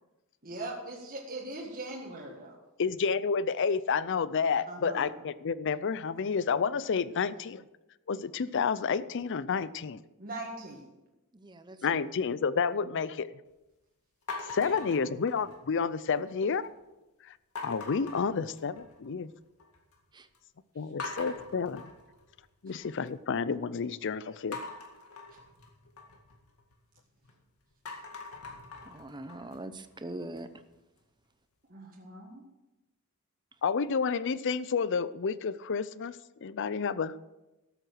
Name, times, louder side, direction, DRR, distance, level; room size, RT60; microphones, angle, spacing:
voice 1, 0.4-2.6 4.7-5.2 10.2-10.9 14.6-15.1 31.7-32.4, right 2 dB, 40° right, -2 dB, 1.7 m, -41 dB
voice 2, 2.8-7.6 8.1-10.0 11.8-13.3 14.4-16.6 17.3-17.4 17.6-19.3 20.8-21.8 22.6-24.6 33.6-37.1, left 5 dB, 55° left, 17 dB, 0.5 m, -30 dB
voice 3, 11.3-12.0 20.1-20.3 28.9-30.5, right 1 dB, 20° right, 11 dB, 0.7 m, -42 dB
sound 1, 14.3-15.8 16.1-16.7 17.6-19.1 19.4-20.0 20.3-20.4 21.0-23.1 24.5-27.3 27.7-30.6, left 3 dB, 75° left, 2.0 m, -43 dB
13.0 x 7.7 x 6.5 m, 1.0 s
head